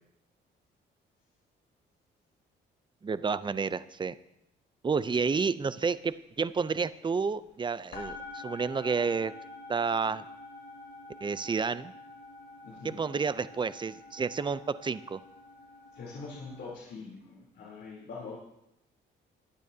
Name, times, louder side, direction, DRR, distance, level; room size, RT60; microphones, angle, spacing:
voice 1, 3.0-4.1 4.8-9.3 9.7-10.2 11.2-11.9 12.8-15.2, right 5 dB, 25° right, 15 dB, 0.5 m, -30 dB
sound 1, 6.0-6.2 6.5-7.5 7.9-16.7, left 2 dB, 85° left, 3.7 m, -47 dB
voice 2, 12.6-13.0 15.9-18.4, left 4 dB, 65° left, -5 dB, 3.5 m, -43 dB
22.0 x 9.0 x 2.8 m, 0.81 s
cardioid pair, 90°, 20 cm